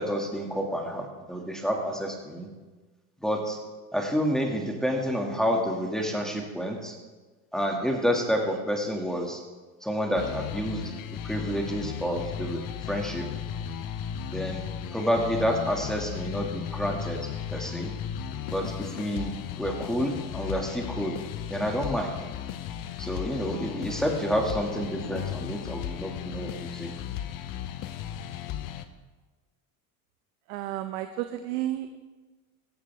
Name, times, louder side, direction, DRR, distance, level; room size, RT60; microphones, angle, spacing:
voice 1, 0.0-2.5 3.2-3.6 3.9-6.9 7.5-9.4 9.8-10.8 11.2-12.6 12.9-13.3 14.3-14.6 14.9-17.2 17.5-17.9 18.5-19.3 19.6-21.2 21.5-22.1 23.0-27.0, equal, ahead, 0 dB, 2.5 m, -29 dB
sound 1, 10.2-28.8, left 9 dB, 50° left, 1.1 m, -35 dB
voice 2, 30.5-32.0, right 13 dB, 75° right, 8 dB, 1.0 m, -32 dB
16.0 x 14.0 x 3.7 m, 1.3 s
supercardioid pair, 100°, 43 cm